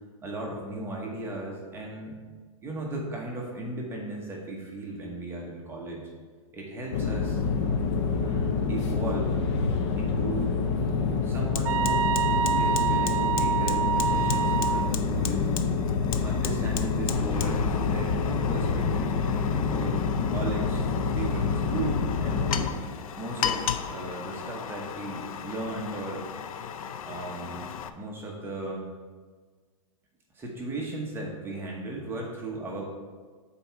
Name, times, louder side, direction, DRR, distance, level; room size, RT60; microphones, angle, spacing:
voice 1, 0.2-2.2 2.6-6.1 6.5-7.4 8.1-9.3 9.9-10.6 11.2-12.1 12.6-15.5 16.2-20.0 20.3-20.8 21.2-22.7 23.2-26.3 27.0-28.9 30.3-32.9, right 2 dB, 15° right, -2 dB, 1.0 m, -36 dB
sound 1, 6.9-22.7, left 5 dB, 50° left, 0.9 m, -27 dB
Fire, 10.4-10.5 10.9-27.9, left 8 dB, 80° left, 0.5 m, -36 dB
sound 2, 11.7-14.9, right 8 dB, 70° right, 0.4 m, -26 dB
7.8 x 4.3 x 4.6 m, 1.5 s
hypercardioid pair, 145°, 18 cm